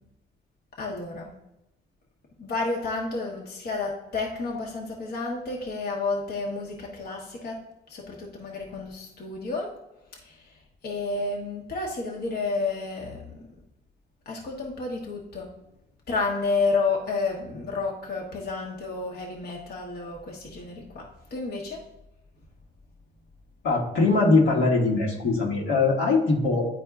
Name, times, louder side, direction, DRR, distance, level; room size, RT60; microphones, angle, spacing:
voice 1, 0.8-1.3 2.4-7.6 7.9-9.7 10.1-10.6 10.8-13.4 14.3-15.5 16.1-21.8, left 3 dB, 55° left, -1 dB, 1.0 m, -31 dB
voice 2, 23.6-26.6, left 3 dB, 80° left, -3 dB, 1.4 m, -21 dB
9.6 x 4.3 x 2.3 m, 0.91 s
cardioid pair, 90°, 20 cm